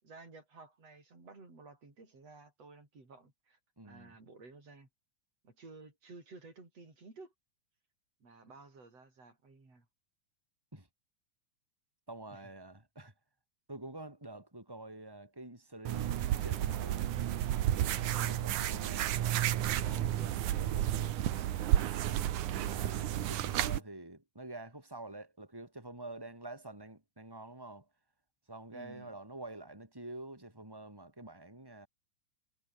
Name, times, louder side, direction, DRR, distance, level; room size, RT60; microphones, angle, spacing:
voice 1, 0.0-3.6 3.8-4.9 5.4-7.3 8.2-9.9 12.3-12.5 18.1-18.4 19.8-20.9 28.7-29.1, right 3 dB, 50° right, 8.7 m, -53 dB
voice 2, 3.8-4.1 10.7-10.9 12.1-13.1 13.7-17.0 18.1-19.1 22.5-27.9 28.5-31.9, right 2 dB, 5° right, 6.2 m, -47 dB
sound 1, 15.9-23.8, right 12 dB, 75° right, 2.7 m, -32 dB
omnidirectional pair, 3.6 m